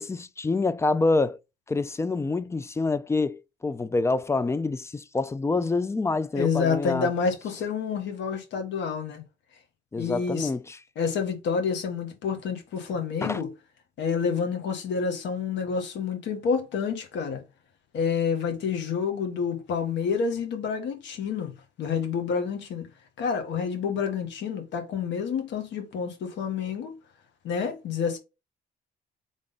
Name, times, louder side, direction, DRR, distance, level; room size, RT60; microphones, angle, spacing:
voice 1, 0.0-1.4 1.7-7.1 9.9-10.8 13.2-13.4, left 3 dB, 15° left, 0.3 m, -26 dB
voice 2, 6.3-9.2 10.0-10.5 10.9-13.5 14.0-17.4 17.9-21.5 21.8-22.9 23.2-26.9 27.4-28.2, left 6 dB, 80° left, 1.6 m, -28 dB
3.8 x 3.6 x 3.9 m
cardioid pair, 115°, 19 cm